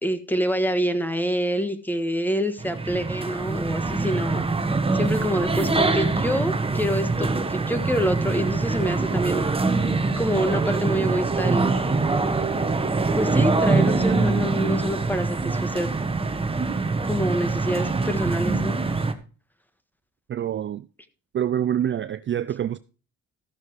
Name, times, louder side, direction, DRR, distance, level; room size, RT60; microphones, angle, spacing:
voice 1, 0.0-9.5 10.2-12.0 13.1-15.9 17.1-18.8, equal, 5° left, 1.5 m, -26 dB
sound 1, 2.6-19.1, right 3 dB, 20° right, 1.3 m, -24 dB
voice 2, 20.3-20.8 21.3-22.8, right 10 dB, 40° right, 0.4 m, -26 dB
14.5 x 6.4 x 4.8 m
cardioid pair, 90°, 30 cm